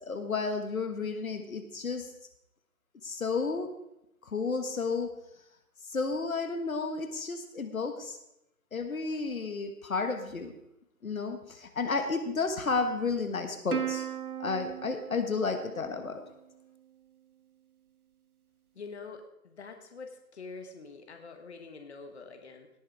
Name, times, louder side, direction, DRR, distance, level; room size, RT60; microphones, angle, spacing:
voice 1, 0.0-2.1 3.0-3.7 4.3-5.1 5.9-8.2 8.7-10.5 11.0-14.1 14.4-16.2, left 4 dB, 60° left, 7 dB, 1.6 m, -32 dB
Plucked string instrument, 13.7-16.5, right 8 dB, 70° right, 1.3 m, -37 dB
voice 2, 18.7-22.7, left 4 dB, 45° left, 5 dB, 1.5 m, -45 dB
18.0 x 7.3 x 4.8 m, 0.85 s
figure-of-eight pair, 160°, 46 cm